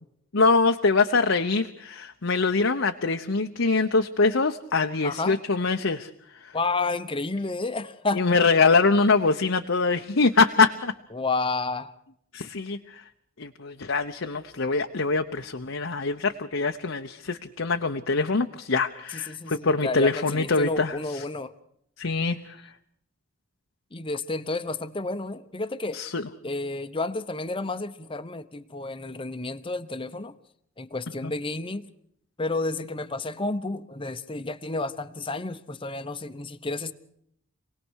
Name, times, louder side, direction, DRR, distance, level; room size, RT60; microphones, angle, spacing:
voice 1, 0.3-6.5 8.1-10.9 12.3-13.0 13.4-21.2 22.0-22.7 25.9-26.3 31.2-31.3, left 4 dB, 75° left, 5 dB, 1.0 m, -24 dB
voice 2, 5.0-5.4 6.5-8.5 11.1-11.9 19.1-21.5 23.9-26.0 26.4-30.3 30.8-31.8 32.4-36.9, left 3 dB, 25° left, 9 dB, 0.9 m, -31 dB
27.5 x 18.5 x 6.4 m, 0.71 s
head